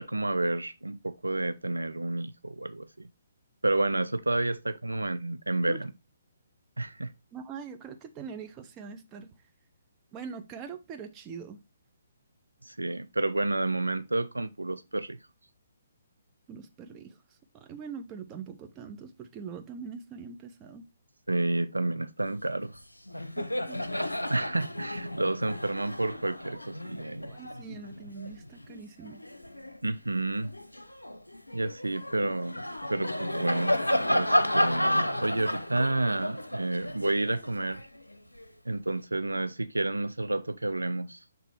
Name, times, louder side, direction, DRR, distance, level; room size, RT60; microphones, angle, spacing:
voice 1, 0.0-3.1 3.6-5.9 6.8-7.1 12.6-15.2 21.3-22.7 24.3-27.3 29.8-30.5 31.5-32.6 32.9-33.8 34.1-37.8 38.7-41.2, right 2 dB, 80° right, 0.4 m, -30 dB
voice 2, 7.3-9.3 10.1-11.6 16.5-17.2 17.5-20.9 23.4-23.8 27.3-29.2, right 6 dB, 20° right, 0.8 m, -43 dB
Laughter, 22.6-22.8 23.1-29.8 30.3-38.5, left 1 dB, 90° left, 0.6 m, -32 dB
6.0 x 3.4 x 4.6 m
figure-of-eight pair, 135°, 0 cm